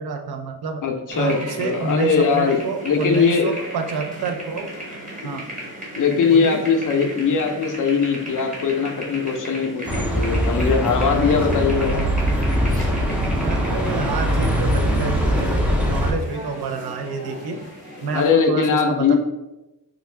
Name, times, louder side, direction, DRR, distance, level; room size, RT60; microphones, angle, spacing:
voice 1, 0.0-0.8 1.2-4.7 5.2-5.5 6.3-6.6 13.4-17.7 18.0-19.2, right 4 dB, 75° right, 4 dB, 0.5 m, -28 dB
voice 2, 0.8-2.6 2.8-3.5 5.2-5.3 6.0-12.1 18.1-19.2, left 5 dB, 55° left, 4 dB, 0.5 m, -20 dB
sound 1, 1.1-18.3, right 1 dB, 20° right, 1.0 m, -36 dB
Bus, 9.9-16.1, equal, 5° right, 0.5 m, -21 dB
3.7 x 2.3 x 3.2 m, 0.99 s
wide cardioid pair, 115°, 38 cm